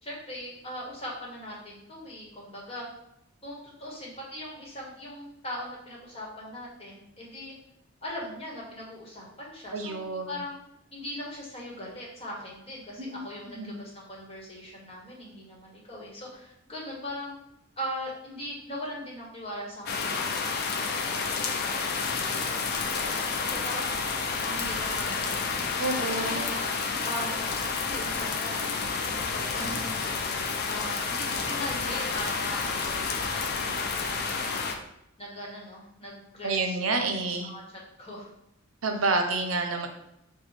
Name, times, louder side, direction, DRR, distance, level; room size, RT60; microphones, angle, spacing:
voice 1, 0.0-2.8 3.4-7.6 8.0-10.6 10.9-17.4 17.8-23.9 24.4-25.4 26.0-26.6 27.0-27.6 27.8-28.7 29.3-30.3 30.7-34.6 35.2-38.3, equal, 30° left, -4 dB, 1.3 m, -40 dB
voice 2, 9.7-10.3 13.0-13.2 13.5-13.8 25.8-26.5 36.4-37.5 38.8-39.9, right 3 dB, 85° right, 5 dB, 0.6 m, -29 dB
sound 1, 19.9-34.7, left 4 dB, 50° left, 0.5 m, -30 dB
4.8 x 2.3 x 4.3 m, 0.81 s
head